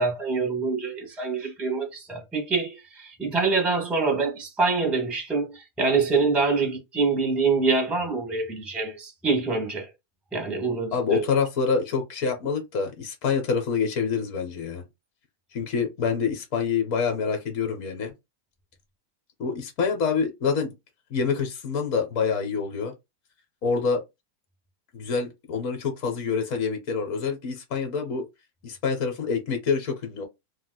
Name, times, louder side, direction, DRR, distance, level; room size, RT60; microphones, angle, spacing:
voice 1, 0.0-9.9 10.3-11.3, right 4 dB, ahead, 0.8 m, -25 dB
voice 2, 10.9-14.8 15.5-18.1 19.4-20.7 21.1-22.9 23.6-24.0 24.9-28.2 28.6-30.2, left 5 dB, 60° left, 1.0 m, -26 dB
3.2 x 2.8 x 2.2 m
omnidirectional pair, 1.8 m